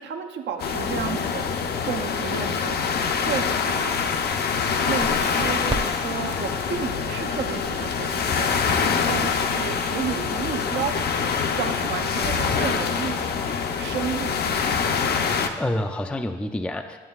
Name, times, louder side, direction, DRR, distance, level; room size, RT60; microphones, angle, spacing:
voice 1, 0.0-1.5 1.9-2.8 3.3-4.0 4.9-11.0 11.6-13.3 13.8-14.4, right 7 dB, 65° right, 5 dB, 0.6 m, -32 dB
sound 1, 0.6-15.5, left 6 dB, 55° left, 0.5 m, -25 dB
Crackle, 4.9-11.6, right 2 dB, 25° right, 0.7 m, -39 dB
voice 2, 15.1-17.0, left 1 dB, 5° left, 6 dB, 0.3 m, -29 dB
9.3 x 7.9 x 2.3 m, 1.4 s
cardioid pair, 90°, 20 cm